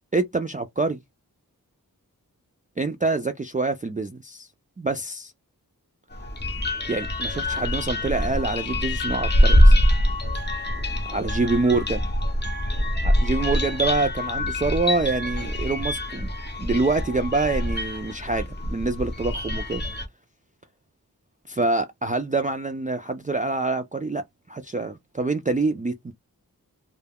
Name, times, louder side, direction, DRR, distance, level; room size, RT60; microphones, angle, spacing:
voice 1, 0.1-1.0 2.8-4.5 4.8-5.3 6.9-9.7 11.1-12.0 13.0-16.3 16.6-19.8 21.5-24.2 24.5-26.1, right 3 dB, 25° right, 0.3 m, -26 dB
sound 1, 6.1-20.1, equal, 30° left, 0.6 m, -24 dB
2.2 x 2.2 x 3.4 m
wide cardioid pair, 45°, 37 cm